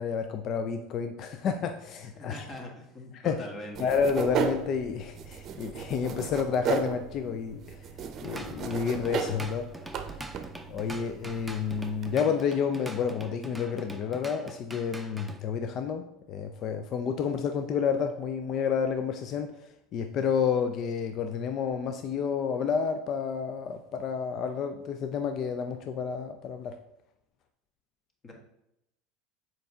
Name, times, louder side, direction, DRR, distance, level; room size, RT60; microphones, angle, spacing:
voice 1, 0.0-2.3 3.2-3.4 3.8-7.9 8.2-9.9 10.7-19.5 19.9-26.8, left 6 dB, 50° left, 7 dB, 0.5 m, -30 dB
voice 2, 2.1-3.8 28.2-28.3, left 1 dB, 30° left, 1 dB, 1.7 m, -41 dB
sound 1, 3.7-12.1, right 7 dB, 40° right, 0.7 m, -35 dB
Drum kit / Drum, 8.0-15.4, right 1 dB, 5° right, 0.7 m, -44 dB
6.8 x 4.6 x 3.6 m, 0.84 s
hypercardioid pair, 80°, 0 cm